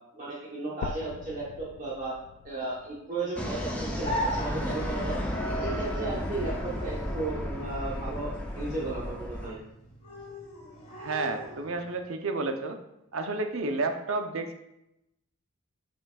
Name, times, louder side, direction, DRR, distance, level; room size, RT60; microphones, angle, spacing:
voice 1, 0.1-2.1 2.4-5.2 5.4-8.3 8.6-9.6, right 2 dB, 35° right, -7 dB, 1.1 m, -34 dB
sound 1, 0.8-4.8 5.4-5.5 6.0-6.1 6.5-6.6 7.4-7.5, left 6 dB, 80° left, 0.3 m, -44 dB
sound 2, 3.4-9.5, equal, 5° left, 0.6 m, -33 dB
sound 3, 4.0-12.0, equal, 25° left, 1.5 m, -39 dB
voice 2, 10.9-12.8 13.1-14.6, right 3 dB, 70° right, 6 dB, 0.7 m, -31 dB
7.0 x 6.1 x 2.4 m, 0.87 s
head